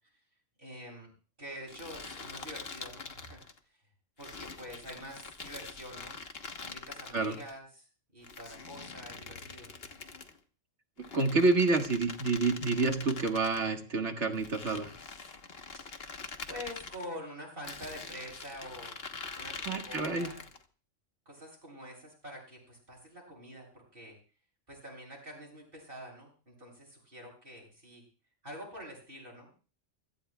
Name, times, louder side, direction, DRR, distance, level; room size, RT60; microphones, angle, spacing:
voice 1, 0.6-1.1 1.4-3.4 4.2-6.2 6.6-7.9 8.1-9.8 15.7-16.0 16.5-19.0 19.4-20.4 21.2-24.2 24.7-28.0 28.4-29.5, equal, 45° right, -1 dB, 8.3 m, -46 dB
sound 1, 1.7-3.6 4.2-7.5 8.2-10.4 11.0-13.6 14.3-17.1 17.6-20.6, left 4 dB, 55° left, 1.5 m, -44 dB
voice 2, 11.1-14.9 19.7-20.3, right 3 dB, 70° right, 4 dB, 2.1 m, -28 dB
26.5 x 16.5 x 2.3 m, 0.37 s
omnidirectional pair, 1.3 m